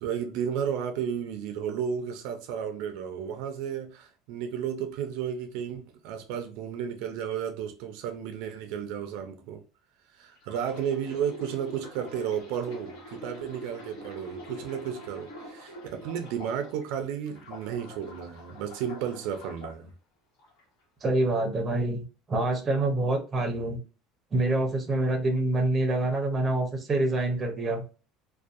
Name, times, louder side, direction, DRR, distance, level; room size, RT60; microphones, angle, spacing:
voice 1, 0.0-9.6 10.1-19.9, right 8 dB, 65° right, 0.4 m, -33 dB
sound 1, 10.4-16.9 17.3-19.7 20.4-20.6, equal, 70° left, 1.1 m, -45 dB
voice 2, 21.0-23.8 24.3-27.8, right 2 dB, 20° right, 0.6 m, -26 dB
2.6 x 2.1 x 2.4 m
cardioid pair, 165°, 0 cm